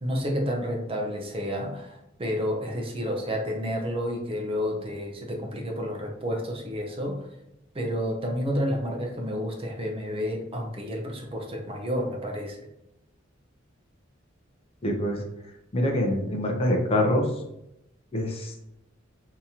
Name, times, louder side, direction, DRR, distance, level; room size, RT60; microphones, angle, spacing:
voice 1, 0.0-7.3 7.7-12.6, equal, 30° right, 2 dB, 0.5 m, -30 dB
voice 2, 14.8-15.2 15.7-17.4 18.1-18.6, left 1 dB, 30° left, 2 dB, 0.5 m, -25 dB
3.6 x 2.8 x 2.8 m, 0.83 s
head